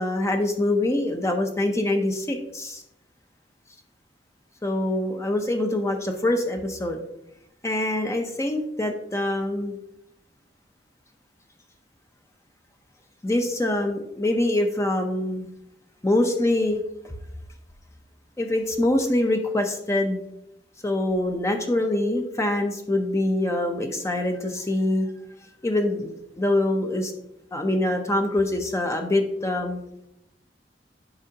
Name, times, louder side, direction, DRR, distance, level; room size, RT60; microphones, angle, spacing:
voice 1, 0.0-2.8 4.6-7.0 7.6-9.8 13.2-15.5 16.0-16.8 18.4-20.2 20.8-25.1 25.6-27.1 27.5-29.8, left 1 dB, 15° left, 4 dB, 0.6 m, -24 dB
8.8 x 5.4 x 2.8 m, 0.82 s
head